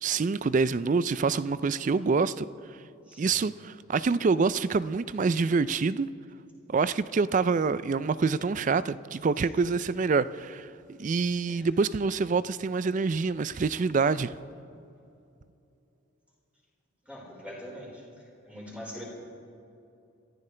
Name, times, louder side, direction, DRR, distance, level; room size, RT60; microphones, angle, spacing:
voice 1, 0.0-2.5 3.2-6.1 6.7-10.7 11.0-14.3, right 4 dB, 35° right, 0.3 m, -26 dB
voice 2, 3.0-3.5 11.5-11.7 13.5-13.6 17.1-19.0, equal, 5° right, 4.6 m, -44 dB
27.0 x 14.5 x 3.3 m
head